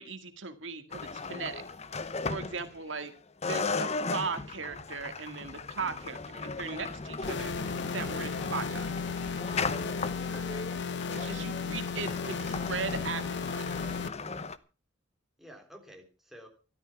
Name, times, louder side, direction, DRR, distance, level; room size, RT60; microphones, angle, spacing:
voice 1, 0.0-1.6 2.2-3.1 3.4-7.5 7.9-8.9 11.1-13.6, right 5 dB, 80° right, 9 dB, 1.9 m, -38 dB
sound 1, 0.9-3.1 3.4-14.6, left 3 dB, 35° left, 0.9 m, -36 dB
sound 2, 7.2-14.1, left 5 dB, 65° left, 1.0 m, -35 dB
voice 2, 10.2-11.5 15.4-16.5, equal, ahead, 2 dB, 3.2 m, -52 dB
14.0 x 13.0 x 5.9 m, 0.35 s
head